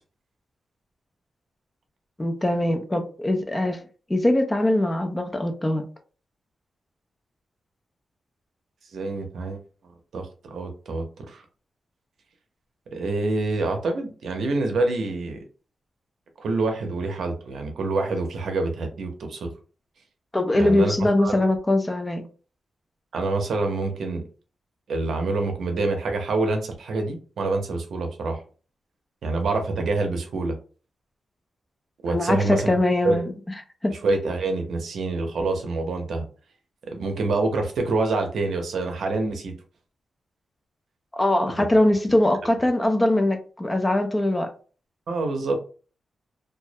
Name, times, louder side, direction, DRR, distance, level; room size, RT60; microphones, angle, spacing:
voice 1, 2.2-3.8 4.1-5.8 20.3-22.2 32.1-33.3 33.8-33.9 41.1-44.5, left 1 dB, 15° left, 0.3 m, -22 dB
voice 2, 8.9-9.6 10.1-11.4 12.9-15.4 16.4-19.5 20.5-21.3 23.1-24.2 24.9-28.4 29.2-30.6 32.0-32.8 33.0-33.2 33.9-36.3 36.9-39.5 45.1-45.6, right 3 dB, 75° right, 0.6 m, -26 dB
2.2 x 2.1 x 2.7 m
wide cardioid pair, 155°, 0 cm